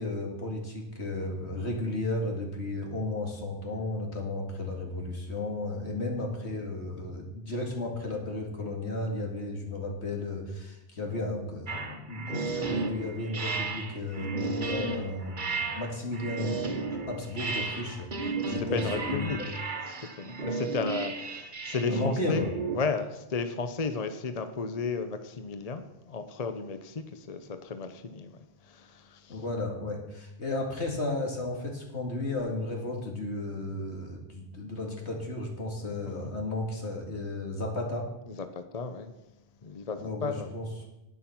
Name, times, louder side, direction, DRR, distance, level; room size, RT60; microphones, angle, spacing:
voice 1, 0.0-16.6 16.9-18.8 19.1-19.5 21.9-22.5 29.3-38.1 40.0-40.9, left 2 dB, 65° left, 1 dB, 2.5 m, -34 dB
sound 1, 11.7-22.8, right 3 dB, 40° right, 1.3 m, -33 dB
voice 2, 18.4-19.4 19.9-22.4 22.7-28.3 28.6-29.4 36.2-36.3 38.3-39.1 39.6-40.5, left 4 dB, 40° left, 9 dB, 0.7 m, -34 dB
11.0 x 9.4 x 5.9 m, 0.92 s
omnidirectional pair, 1.2 m